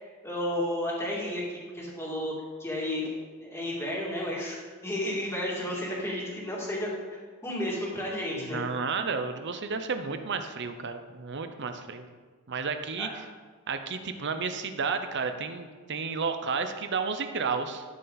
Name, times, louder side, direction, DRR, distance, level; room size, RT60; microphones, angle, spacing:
voice 1, 0.2-1.4 1.7-2.3 2.6-4.6 4.8-8.6 13.0-13.1, left 1 dB, 10° left, -4 dB, 2.4 m, -32 dB
voice 2, 8.3-12.1 12.5-13.1 13.7-17.8, right 5 dB, 55° right, 8 dB, 0.8 m, -32 dB
13.0 x 6.9 x 4.1 m, 1.5 s
head